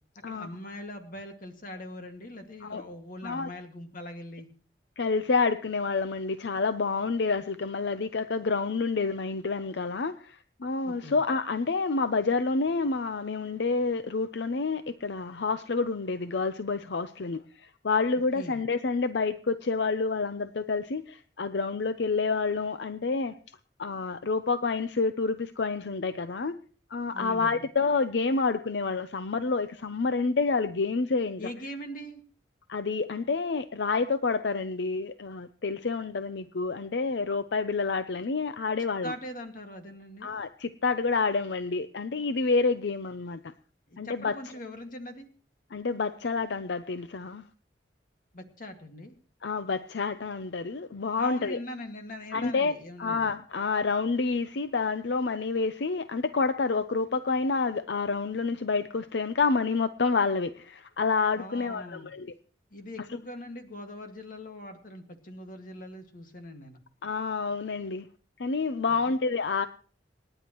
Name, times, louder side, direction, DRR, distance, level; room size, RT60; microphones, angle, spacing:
voice 1, 0.3-4.5 10.8-11.2 18.3-18.6 27.1-27.6 31.4-32.2 39.0-40.3 43.9-45.3 48.3-49.1 51.2-53.2 61.4-62.1 62.7-66.8 68.9-69.1, left 1 dB, 50° left, 5 dB, 2.0 m, -41 dB
voice 2, 5.0-23.3 23.8-26.5 26.9-31.4 32.7-39.1 40.2-43.4 44.0-44.3 45.7-47.4 49.4-51.6 52.3-52.7 53.0-62.3 67.0-68.1 68.4-69.7, left 4 dB, 75° left, 11 dB, 0.6 m, -28 dB
27.5 x 10.0 x 3.0 m, 0.42 s
head